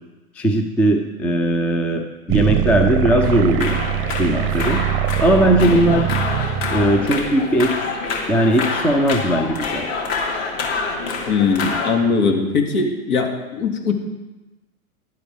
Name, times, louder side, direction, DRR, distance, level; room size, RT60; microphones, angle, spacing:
voice 1, 0.4-3.8 4.2-4.8 5.2-6.1 6.7-7.7 8.3-9.9, right 1 dB, 5° left, 5 dB, 0.4 m, -18 dB
sound 1, 2.3-7.3, right 10 dB, 30° right, 0.7 m, -22 dB
sound 2, 3.2-11.9, left 4 dB, 45° left, 2.7 m, -27 dB
voice 2, 11.3-13.9, left 5 dB, 75° left, 2 dB, 2.7 m, -20 dB
15.5 x 11.0 x 3.7 m, 1.1 s
hypercardioid pair, 125°, 44 cm